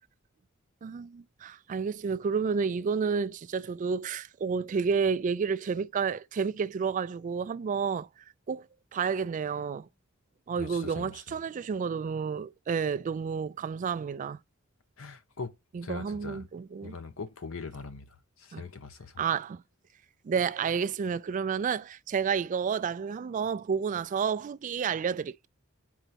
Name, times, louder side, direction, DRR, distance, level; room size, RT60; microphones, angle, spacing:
voice 1, 0.8-8.1 8.5-8.7 8.9-9.9 10.5-14.4 15.7-17.0 18.5-18.6 19.2-19.6 20.2-25.5, right 6 dB, 40° right, 0.3 m, -30 dB
voice 2, 10.6-11.1 15.0-15.5 15.8-16.5 16.8-18.0 18.4-19.1, left 4 dB, 70° left, 0.8 m, -41 dB
4.7 x 3.9 x 5.7 m
head